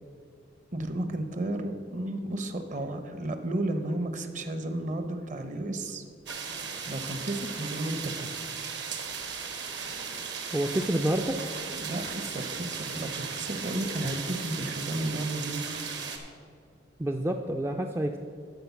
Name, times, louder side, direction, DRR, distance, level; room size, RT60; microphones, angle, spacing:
voice 1, 0.7-6.1 6.8-8.3 11.8-15.9, right 1 dB, 40° right, 8 dB, 0.8 m, -33 dB
sound 1, 6.3-16.2, right 6 dB, 65° right, 1.2 m, -36 dB
voice 2, 10.5-11.4 17.0-18.2, right 1 dB, 15° right, 4 dB, 0.3 m, -28 dB
12.0 x 4.3 x 7.0 m, 2.2 s
head